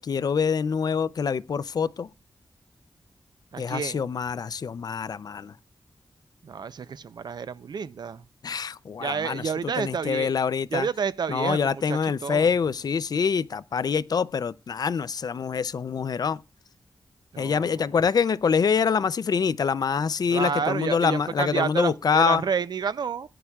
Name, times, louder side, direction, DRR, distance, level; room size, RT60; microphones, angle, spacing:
voice 1, 0.0-2.1 3.6-5.5 8.4-10.9 11.3-16.4 17.4-22.4, left 6 dB, 60° left, 0.5 m, -25 dB
voice 2, 3.5-4.0 6.4-8.2 9.0-10.3 10.7-12.5 17.3-17.8 20.3-23.3, right 6 dB, 65° right, 0.5 m, -30 dB
18.0 x 9.9 x 2.3 m
wide cardioid pair, 140°, 8 cm